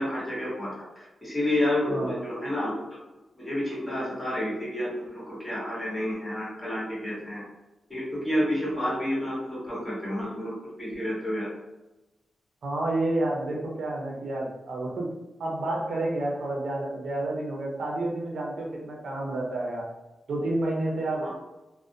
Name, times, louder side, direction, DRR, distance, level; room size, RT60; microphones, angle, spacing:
voice 1, 0.0-2.7 3.4-7.4 7.9-10.5 10.8-11.5 21.2-21.3, left 1 dB, 15° left, -7 dB, 1.1 m, -30 dB
voice 2, 1.9-2.2 12.6-15.1 15.4-19.9 20.3-21.3, right 2 dB, 75° right, -2 dB, 0.6 m, -30 dB
2.4 x 2.1 x 2.5 m, 1.0 s
wide cardioid pair, 110°, 0 cm